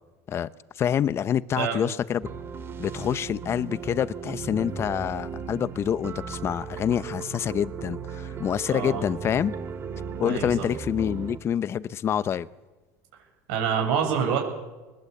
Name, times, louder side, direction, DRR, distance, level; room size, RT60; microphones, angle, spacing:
voice 1, 0.8-2.3 2.8-9.5 10.2-12.5, left 9 dB, 35° left, 17 dB, 0.8 m, -27 dB
sound 1, 2.2-11.4, right 6 dB, 35° right, 2.1 m, -36 dB
voice 2, 8.7-9.0 10.3-10.7 13.5-14.4, right 7 dB, 80° right, 2 dB, 7.4 m, -26 dB
22.0 x 20.5 x 8.1 m, 1.2 s
supercardioid pair, 120°, 7 cm